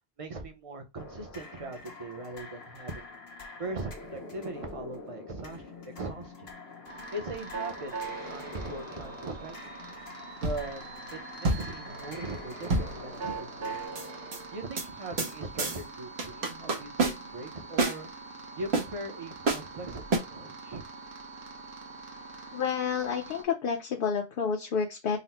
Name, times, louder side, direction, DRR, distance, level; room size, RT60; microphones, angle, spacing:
voice 1, 0.2-3.0 3.6-5.6 6.0-6.5 7.1-7.9 8.3-9.6 10.4-10.8 11.1-13.7 14.5-18.1 18.6-20.8, right 2 dB, 40° right, 0.6 m, -40 dB
sound 1, 1.0-13.9, left 3 dB, 75° left, 1.1 m, -46 dB
sound 2, 6.9-23.4, right 4 dB, 60° right, 1.0 m, -43 dB
sound 3, 8.0-8.6 10.4-10.9 11.4-13.5 14.0-14.4 14.8-14.9 15.2-15.3 15.6-15.8 16.2-17.4 17.8-18.0 18.7-18.8 19.5-19.7 20.1-20.2, right 3 dB, 85° right, 1.2 m, -29 dB
voice 2, 22.5-25.2, left 6 dB, 60° left, 0.8 m, -29 dB
4.0 x 2.0 x 4.2 m
omnidirectional pair, 1.0 m